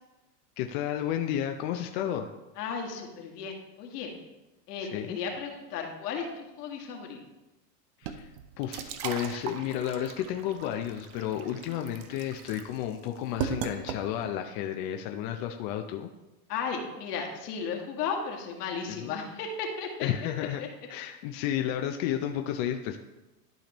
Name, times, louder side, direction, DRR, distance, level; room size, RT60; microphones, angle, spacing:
voice 1, 0.6-2.3 4.8-5.2 8.0-16.1 18.9-19.1 20.0-20.6 20.9-23.0, left 10 dB, 40° left, 5 dB, 0.6 m, -32 dB
voice 2, 2.6-4.1 4.7-7.2 16.5-20.1 20.6-20.7, left 5 dB, 70° left, 1 dB, 1.9 m, -35 dB
sound 1, 8.0-14.4, right 8 dB, 50° right, 0.8 m, -38 dB
12.0 x 5.0 x 3.0 m, 1.0 s
hypercardioid pair, 120°, 48 cm